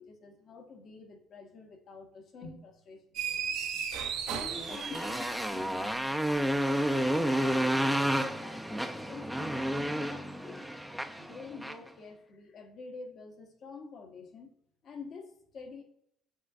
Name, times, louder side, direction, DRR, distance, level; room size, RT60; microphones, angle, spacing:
voice 1, 0.0-3.2 4.3-14.5 14.8-15.8, left 4 dB, 55° left, 4 dB, 1.0 m, -48 dB
sound 1, 3.1-5.7, right 7 dB, 80° right, 0.7 m, -35 dB
Motorcycle, 4.5-11.9, equal, ahead, 0.4 m, -31 dB
7.5 x 2.5 x 2.4 m, 0.74 s
cardioid pair, 95°, 0 cm